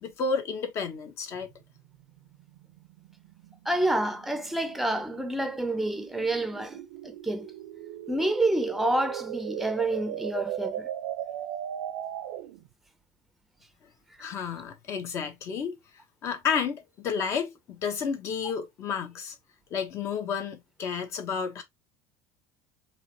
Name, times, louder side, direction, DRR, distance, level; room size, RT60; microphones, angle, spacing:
voice 1, 0.0-1.5 14.2-15.8 16.2-19.3 19.7-21.6, left 6 dB, 40° left, 1.3 m, -31 dB
sound 1, 1.3-12.7, right 11 dB, 85° right, 0.7 m, -38 dB
voice 2, 3.7-7.5 8.1-10.9, right 1 dB, 5° right, 0.8 m, -28 dB
4.9 x 3.1 x 3.0 m
cardioid pair, 150°, 8 cm